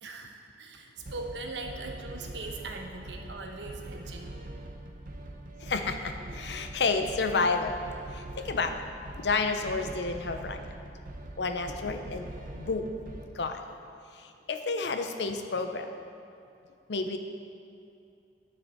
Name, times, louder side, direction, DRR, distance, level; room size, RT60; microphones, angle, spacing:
voice 1, 0.0-4.4, right 3 dB, 90° right, 3 dB, 0.9 m, -40 dB
sound 1, 1.0-13.3, right 1 dB, 50° right, 0.7 m, -43 dB
voice 2, 5.6-7.8 8.1-8.8 9.2-10.6 11.4-12.9 13.3-13.7 14.1-15.9 16.9-17.2, left 4 dB, 70° left, 7 dB, 0.6 m, -30 dB
9.6 x 6.7 x 4.4 m, 2.6 s
head